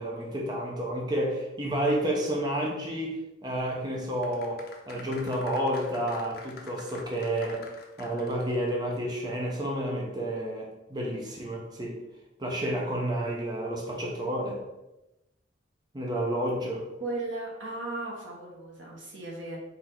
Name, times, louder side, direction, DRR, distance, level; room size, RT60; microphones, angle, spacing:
voice 1, 0.0-12.0 12.4-14.6 15.9-16.9, right 1 dB, 20° right, -2 dB, 0.7 m, -30 dB
sound 1, 4.2-8.7 9.0-9.1, left 3 dB, 50° left, 0.6 m, -47 dB
voice 2, 17.0-19.6, right 2 dB, 90° right, -2 dB, 1.3 m, -36 dB
4.4 x 2.7 x 4.0 m, 0.96 s
head